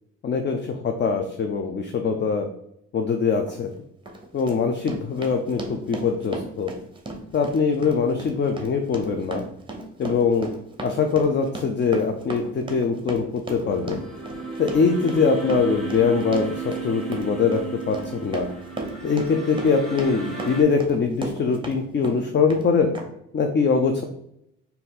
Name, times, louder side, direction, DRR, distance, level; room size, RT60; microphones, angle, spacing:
voice 1, 0.2-2.5 2.9-3.7 4.3-6.7 7.3-9.4 10.0-10.5 10.8-14.0 14.6-17.6 17.9-18.5 19.0-22.9 23.3-24.0, left 5 dB, 35° left, 4 dB, 0.5 m, -22 dB
Run, 3.4-3.6 4.1-21.8 22.0-22.7 22.9-23.0, right 2 dB, 15° right, 0.9 m, -35 dB
sound 1, 13.6-20.6, right 4 dB, ahead, 1.3 m, -34 dB
4.2 x 2.7 x 3.9 m, 0.75 s
cardioid pair, 90°, 30 cm